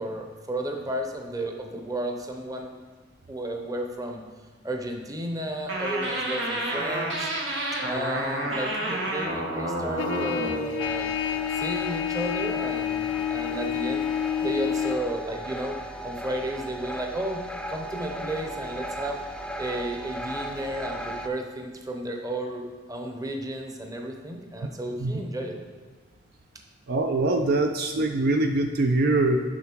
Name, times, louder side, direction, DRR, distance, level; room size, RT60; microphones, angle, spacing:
voice 1, 0.0-2.7 3.3-4.2 4.6-7.3 7.8-11.1 11.5-14.0 14.4-19.2 19.6-25.6, right 1 dB, 20° right, 2 dB, 0.8 m, -33 dB
sound 1, 5.7-10.6, right 1 dB, 90° right, 1.4 m, -29 dB
Trumpet, 10.0-15.0, left 10 dB, 75° left, 0.4 m, -29 dB
sound 2, 10.8-21.3, equal, 5° left, 0.4 m, -36 dB
voice 2, 24.6-25.2 26.9-29.4, right 2 dB, 55° right, 5 dB, 0.4 m, -24 dB
7.1 x 5.6 x 4.5 m, 1.5 s
head